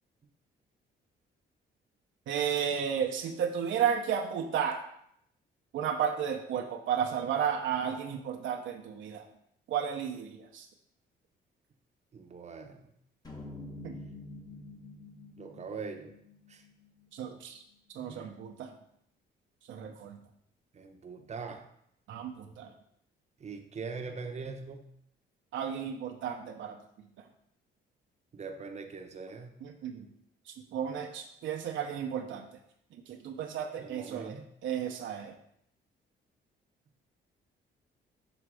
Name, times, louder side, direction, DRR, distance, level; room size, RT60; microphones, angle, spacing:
voice 1, 2.3-4.8 5.7-9.2 9.7-10.7 13.8-13.9 17.1-17.6 17.9-18.7 19.7-20.2 22.1-22.7 25.5-26.8 29.6-30.1 30.7-32.5 32.9-35.3, right 8 dB, 75° right, 3 dB, 0.7 m, -33 dB
voice 2, 12.1-12.9 15.4-16.1 16.5-16.6 18.0-18.3 20.7-21.6 23.4-24.8 28.3-29.5 33.8-34.4, right 4 dB, 35° right, 4 dB, 0.8 m, -42 dB
sound 1, 13.2-17.6, left 2 dB, 20° left, 1.1 m, -48 dB
6.2 x 3.3 x 4.8 m, 0.72 s
cardioid pair, 90°, 20 cm